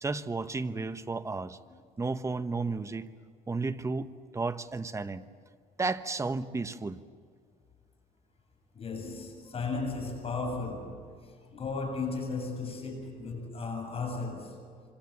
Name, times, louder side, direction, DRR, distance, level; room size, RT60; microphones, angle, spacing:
voice 1, 0.0-1.6 2.0-3.1 3.5-5.3 5.8-7.0, right 3 dB, 15° right, 1.1 m, -33 dB
voice 2, 8.7-14.7, left 3 dB, 35° left, 7.3 m, -35 dB
26.0 x 26.0 x 7.4 m
cardioid pair, 110°, 17 cm